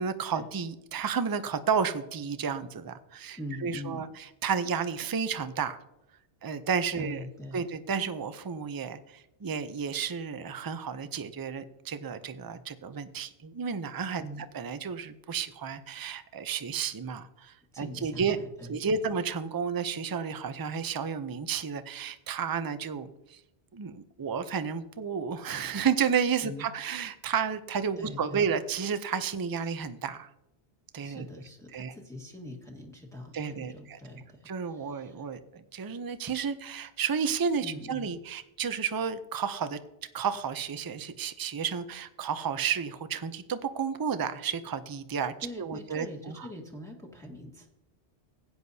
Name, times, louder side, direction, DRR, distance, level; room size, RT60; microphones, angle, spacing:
voice 1, 0.0-5.8 6.4-7.2 7.5-14.2 14.5-18.4 18.7-23.4 23.7-30.3 30.9-31.3 31.7-31.9 33.3-34.0 34.5-39.8 40.1-46.5, right 6 dB, 30° right, 11 dB, 0.4 m, -32 dB
voice 2, 3.4-4.1 6.9-7.7 14.2-14.4 17.7-18.9 26.4-26.6 28.0-28.5 31.0-35.2 37.6-38.1 45.4-47.7, left 1 dB, 5° left, -1 dB, 1.4 m, -43 dB
16.0 x 9.6 x 2.7 m, 0.85 s
omnidirectional pair, 1.1 m